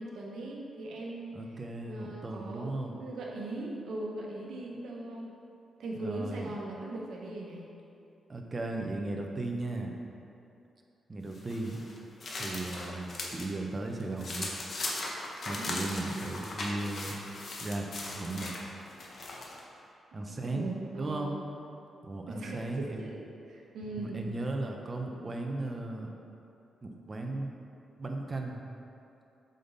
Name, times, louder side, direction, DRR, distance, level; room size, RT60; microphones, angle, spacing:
voice 1, 0.0-1.4 1.8-5.4 5.8-7.7 15.6-15.9 20.3-21.3 22.3-23.2 23.5-24.2, right 2 dB, 80° right, -2 dB, 1.2 m, -40 dB
voice 2, 1.3-3.0 5.9-6.5 8.3-10.0 11.1-11.8 12.4-14.5 15.4-17.2 17.6-18.5 20.1-21.3 22.0-23.1 24.0-26.1 26.8-27.5 28.0-28.6, right 2 dB, 35° right, 2 dB, 0.9 m, -36 dB
sound 1, 11.3-13.5 13.9-19.6, left 2 dB, 55° left, 1.2 m, -38 dB
7.6 x 5.4 x 4.1 m, 2.7 s
cardioid pair, 80°, 0 cm